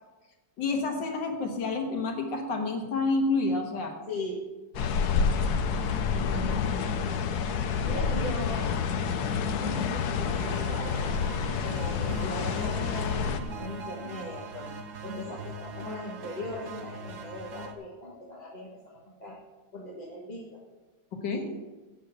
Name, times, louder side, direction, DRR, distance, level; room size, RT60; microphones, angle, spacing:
voice 1, 0.6-4.0 7.8-8.0 15.3-15.4 21.1-21.5, left 3 dB, 85° left, 2 dB, 2.2 m, -29 dB
voice 2, 4.1-4.5 4.7-5.6 6.1-7.1 7.8-8.7 9.5-11.2 11.6-14.7 15.0-19.4 19.7-20.6, left 1 dB, 25° left, -4 dB, 1.5 m, -39 dB
sound 1, 4.7-13.4, left 6 dB, 65° left, 1.2 m, -28 dB
sound 2, 10.2-17.7, right 3 dB, 50° right, 1.2 m, -41 dB
9.4 x 7.2 x 8.0 m, 1.2 s
omnidirectional pair, 1.9 m